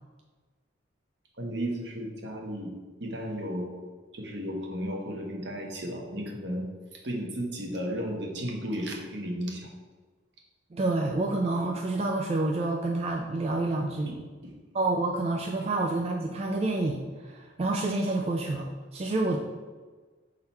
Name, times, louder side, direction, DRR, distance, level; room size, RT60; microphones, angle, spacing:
voice 1, 1.4-2.7 3.0-3.7 4.1-6.6 7.0-9.7 14.0-14.2, equal, 65° right, 0 dB, 1.2 m, -34 dB
voice 2, 10.7-14.1 14.7-19.4, right 2 dB, 35° right, 1 dB, 0.4 m, -28 dB
5.8 x 3.8 x 4.3 m, 1.4 s
head